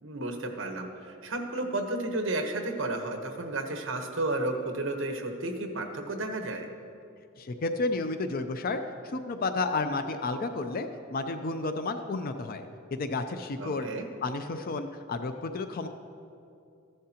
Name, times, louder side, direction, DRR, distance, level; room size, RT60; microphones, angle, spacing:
voice 1, 0.0-6.7 13.6-14.0, right 2 dB, 70° right, 4 dB, 1.1 m, -32 dB
voice 2, 7.4-12.6 12.9-13.9 14.2-15.9, left 3 dB, 50° left, 8 dB, 0.5 m, -31 dB
14.0 x 11.0 x 2.9 m, 2.6 s
head